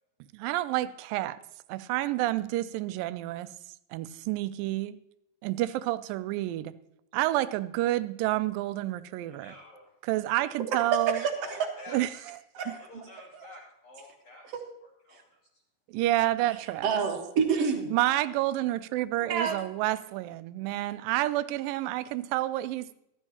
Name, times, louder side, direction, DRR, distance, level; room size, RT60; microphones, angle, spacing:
voice 1, 0.3-1.4 1.7-3.5 3.9-5.0 5.4-6.8 7.1-9.5 10.0-11.2 11.9-12.4 12.7-12.8 15.9-16.9 17.9-22.9, right 16 dB, 80° right, 14 dB, 2.2 m, -29 dB
voice 2, 9.3-9.9 11.4-12.3 12.6-14.6 15.1-15.4, left 2 dB, 50° left, -9 dB, 3.8 m, -49 dB
voice 3, 11.1-11.6 12.5-12.8 13.3-13.5 14.5-14.6 15.1-15.2 16.5-17.9 19.2-19.6, right 6 dB, 55° right, 3 dB, 2.0 m, -29 dB
13.5 x 13.5 x 2.9 m, 0.81 s
omnidirectional pair, 4.1 m